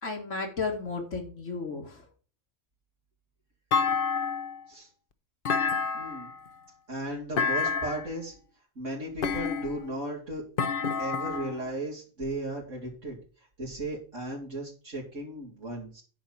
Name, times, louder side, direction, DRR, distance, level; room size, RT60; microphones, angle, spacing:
voice 1, 0.0-2.0, left 4 dB, 80° left, 1 dB, 2.3 m, -33 dB
Thump thud, 3.7-4.6 5.4-6.4 7.4-8.1 9.2-9.9 10.6-11.6, left 5 dB, 50° left, 0.9 m, -28 dB
voice 2, 5.9-6.3 6.9-8.3 8.8-10.4 11.0-13.2 13.6-16.0, right 1 dB, 85° right, -5 dB, 3.3 m, -36 dB
10.0 x 4.6 x 7.3 m, 0.38 s
omnidirectional pair, 1.3 m